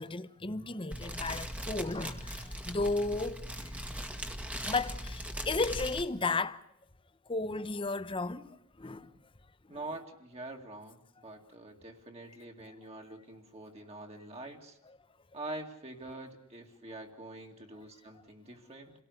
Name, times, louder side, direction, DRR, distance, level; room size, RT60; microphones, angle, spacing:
voice 1, 0.0-3.4 4.6-6.6 7.3-8.5 8.8-9.1, left 3 dB, 25° left, 0.8 m, -34 dB
Fire, 0.9-6.0, equal, 5° right, 1.7 m, -39 dB
voice 2, 9.7-14.8 15.3-18.9, right 2 dB, 30° right, 2.3 m, -45 dB
28.5 x 18.0 x 8.1 m
head